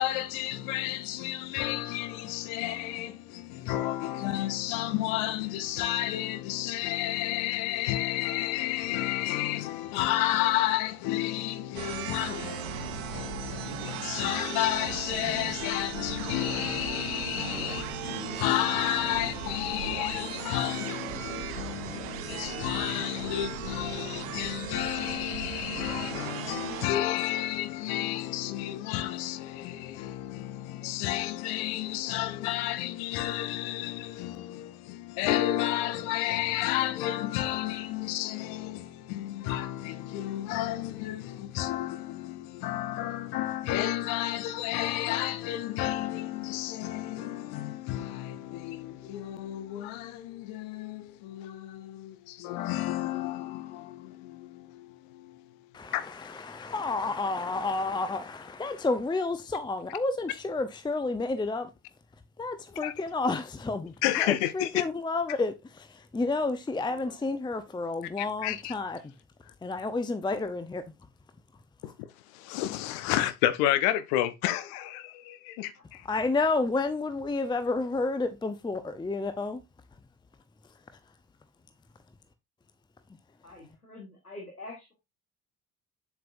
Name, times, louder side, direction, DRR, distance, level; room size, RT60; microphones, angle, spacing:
voice 1, 0.0-56.3 62.8-62.9 64.0-64.8 68.2-68.7 71.8-76.1, left 14 dB, 55° left, 0.9 m, -31 dB
sound 1, 11.8-26.9, right 11 dB, 65° right, 0.9 m, -37 dB
voice 2, 55.7-61.7 62.4-69.1 69.6-70.8 76.1-79.6 80.6-81.0, left 3 dB, 10° left, 0.7 m, -30 dB
voice 3, 66.7-67.3 75.7-76.6 83.4-84.9, left 2 dB, 90° left, 1.3 m, -47 dB
7.6 x 7.2 x 2.6 m
figure-of-eight pair, 55°, 44 cm